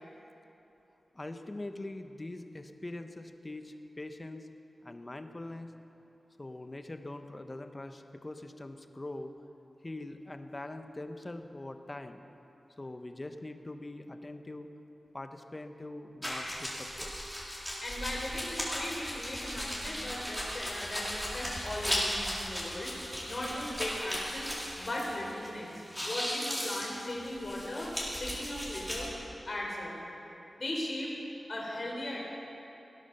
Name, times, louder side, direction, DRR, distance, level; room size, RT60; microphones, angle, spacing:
voice 1, 1.1-4.5 4.8-5.7 6.4-9.3 9.8-12.2 12.8-14.7 15.1-17.4, left 2 dB, 30° left, 7 dB, 1.0 m, -43 dB
sound 1, 16.2-25.5 25.7-29.1, equal, 5° left, 4.1 m, -36 dB
voice 2, 17.8-27.9 28.2-29.1 29.5-29.9 30.6-31.1 31.5-32.2, left 1 dB, 50° left, -2 dB, 3.9 m, -38 dB
18.0 x 10.0 x 6.7 m, 3.0 s
cardioid pair, 60°, 0 cm